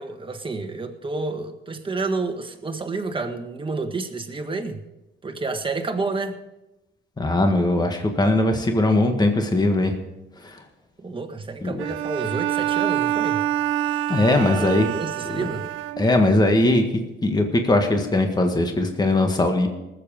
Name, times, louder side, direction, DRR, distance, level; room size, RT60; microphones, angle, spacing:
voice 1, 0.0-4.8 5.2-6.4 11.0-13.4 14.5-15.7, right 3 dB, 25° right, 5 dB, 1.6 m, -29 dB
voice 2, 7.2-9.9 10.4-10.6 11.6-11.8 14.1-14.8 15.3-15.5 16.0-16.8 17.2-19.7, left 2 dB, 20° left, 4 dB, 1.7 m, -20 dB
Bowed string instrument, 11.8-16.4, right 12 dB, 85° right, 0.7 m, -26 dB
19.0 x 7.8 x 5.3 m, 0.97 s
cardioid pair, 90°, 20 cm